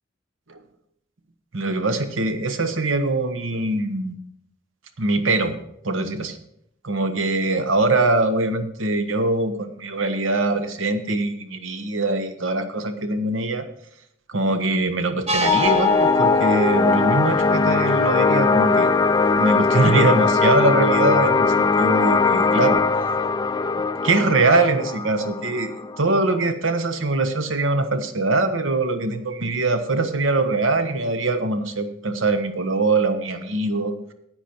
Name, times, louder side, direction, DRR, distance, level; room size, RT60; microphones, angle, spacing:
voice 1, 1.5-4.1 5.0-5.6 5.8-6.4 6.8-13.7 14.3-18.9 19.4-22.8 24.0-33.9, right 2 dB, 75° right, 9 dB, 1.1 m, -22 dB
sound 1, 15.3-20.6, right 1 dB, 35° right, 1.0 m, -31 dB
sound 2, 15.4-26.5, left 4 dB, 20° left, 0.3 m, -20 dB
10.0 x 9.0 x 4.4 m, 0.73 s
head